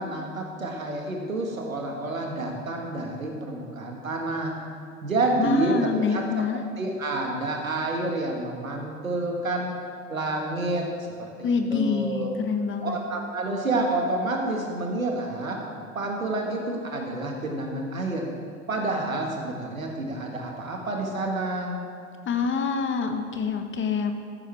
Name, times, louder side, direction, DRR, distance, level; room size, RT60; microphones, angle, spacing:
voice 1, 0.0-4.5 5.0-9.7 10.1-10.9 11.2-12.3 12.8-15.6 15.9-18.3 18.7-21.8, right 2 dB, 85° right, 1 dB, 1.5 m, -29 dB
voice 2, 5.4-6.6 11.4-13.0 22.3-24.2, left 5 dB, 30° left, 6 dB, 1.2 m, -26 dB
14.0 x 10.5 x 3.4 m, 2.3 s
figure-of-eight pair, 65°, 40 cm